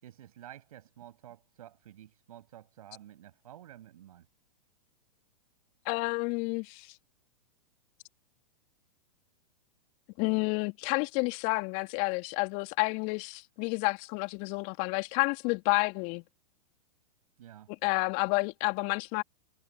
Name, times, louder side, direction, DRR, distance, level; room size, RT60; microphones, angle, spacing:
voice 1, 0.0-4.3 17.4-17.7, right 12 dB, 65° right, 7.2 m, -51 dB
voice 2, 5.8-6.9 10.2-16.2 17.8-19.2, left 30 dB, 45° left, 2.6 m, -30 dB
hypercardioid pair, 105°, 20 cm